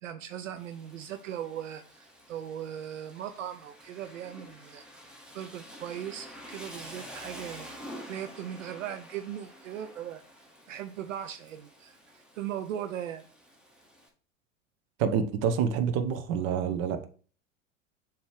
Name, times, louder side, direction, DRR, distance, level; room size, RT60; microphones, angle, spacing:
voice 1, 0.0-4.8 5.3-7.7 8.1-10.2 10.7-13.2, right 10 dB, 70° right, 9 dB, 0.6 m, -38 dB
Rain, 0.6-14.1, equal, ahead, 1.2 m, -49 dB
voice 2, 15.0-17.1, right 7 dB, 40° right, 8 dB, 1.0 m, -27 dB
7.0 x 3.0 x 4.9 m, 0.40 s
figure-of-eight pair, 90°, 40 cm